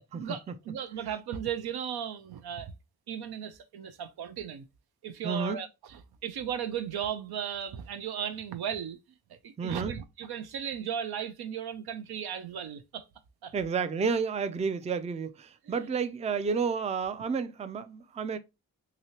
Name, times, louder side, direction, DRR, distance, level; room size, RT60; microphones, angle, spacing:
voice 1, 0.1-2.7 3.1-4.7 5.0-9.0 9.3-13.0 13.4-13.5 15.6-15.9, right 8 dB, 80° right, 0.5 m, -36 dB
voice 2, 5.2-5.6 9.6-10.0 13.5-18.4, right 5 dB, 20° right, 0.3 m, -31 dB
2.9 x 2.8 x 2.9 m
cardioid pair, 45°, 38 cm